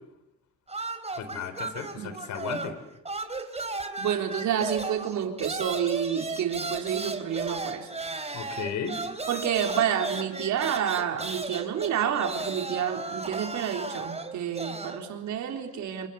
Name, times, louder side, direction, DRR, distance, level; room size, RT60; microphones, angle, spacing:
sound 1, 0.7-2.8 3.0-15.0, right 3 dB, 20° right, 3.7 m, -35 dB
voice 1, 1.2-2.8 8.3-9.0, left 7 dB, 70° left, 11 dB, 4.1 m, -35 dB
voice 2, 4.0-7.9 9.3-16.1, right 9 dB, 70° right, 4 dB, 3.9 m, -29 dB
28.0 x 27.0 x 7.1 m, 0.89 s
supercardioid pair, 65°, 30 cm